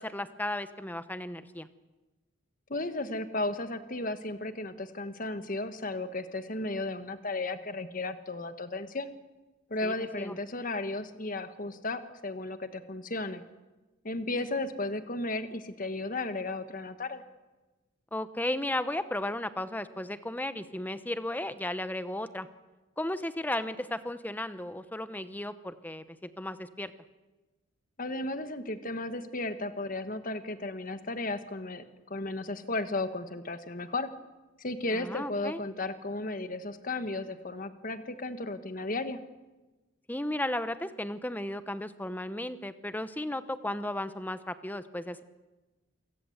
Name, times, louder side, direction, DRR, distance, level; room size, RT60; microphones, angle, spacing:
voice 1, 0.0-1.7 9.8-10.4 18.1-22.5 23.0-26.9 34.9-35.6 40.1-45.2, left 1 dB, 10° left, 12 dB, 0.9 m, -35 dB
voice 2, 2.7-9.1 9.7-13.4 14.0-17.2 28.0-31.8 32.1-34.1 34.6-39.2, left 2 dB, 40° left, 10 dB, 1.4 m, -34 dB
27.5 x 17.0 x 8.0 m, 1.2 s
head